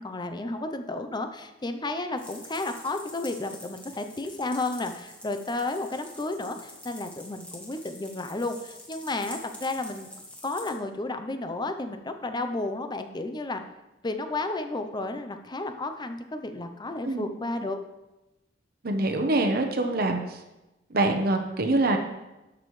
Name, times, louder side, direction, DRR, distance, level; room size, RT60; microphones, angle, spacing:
voice 1, 0.0-10.1 10.4-13.6 14.0-17.8, left 2 dB, 25° left, 7 dB, 0.6 m, -32 dB
sound 1, 2.2-10.7, left 1 dB, 5° left, 1.6 m, -46 dB
voice 2, 18.8-20.2 20.9-22.0, right 2 dB, 55° right, 4 dB, 0.9 m, -24 dB
12.5 x 6.3 x 3.2 m, 0.99 s
head